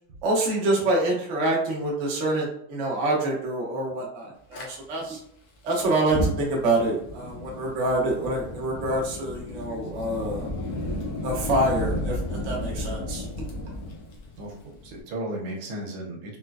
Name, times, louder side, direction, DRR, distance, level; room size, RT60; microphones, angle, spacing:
voice 1, 0.2-5.2 5.6-10.5 11.2-13.3, right 1 dB, 55° right, -3 dB, 0.8 m, -26 dB
Fire, 4.5-4.7 5.9-15.0, left 1 dB, 80° left, 0.8 m, -33 dB
voice 2, 14.4-16.4, right 1 dB, 75° right, 0 dB, 1.5 m, -35 dB
4.1 x 2.2 x 2.3 m, 0.70 s
omnidirectional pair, 2.4 m